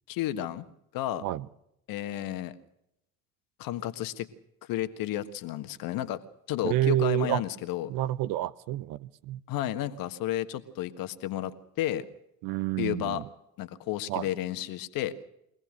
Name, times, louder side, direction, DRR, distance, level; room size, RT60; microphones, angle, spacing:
voice 1, 0.1-0.7 0.9-1.2 1.9-2.6 3.6-4.3 4.7-6.2 6.5-7.9 9.5-12.1 12.8-13.2 13.6-15.1, left 13 dB, 55° left, 11 dB, 1.6 m, -32 dB
voice 2, 6.6-7.4 7.9-9.4 12.4-13.2 14.1-14.3, right 13 dB, 50° right, 17 dB, 0.9 m, -28 dB
24.0 x 17.5 x 6.5 m, 0.79 s
figure-of-eight pair, 55°, 42 cm